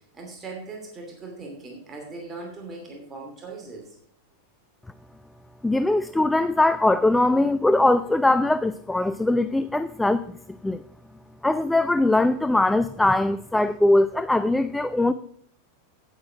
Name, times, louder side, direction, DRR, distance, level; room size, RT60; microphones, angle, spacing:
voice 1, 0.1-3.8, right 3 dB, 20° right, 0 dB, 2.6 m, -39 dB
voice 2, 5.6-10.4 10.6-10.8 11.4-15.1, left 2 dB, 5° left, 13 dB, 0.3 m, -21 dB
9.4 x 8.8 x 4.8 m, 0.66 s
figure-of-eight pair, 90°, 0 cm